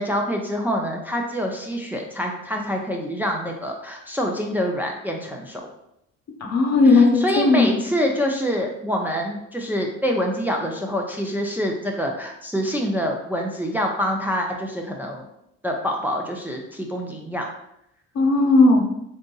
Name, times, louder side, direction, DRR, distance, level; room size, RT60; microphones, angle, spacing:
voice 1, 0.0-5.7 6.9-15.2 15.6-17.5, equal, 5° right, 0 dB, 0.5 m, -26 dB
voice 2, 6.4-7.7 18.1-18.8, left 3 dB, 60° left, 2 dB, 0.9 m, -16 dB
3.7 x 2.6 x 3.8 m, 0.78 s
cardioid pair, 90°, 30 cm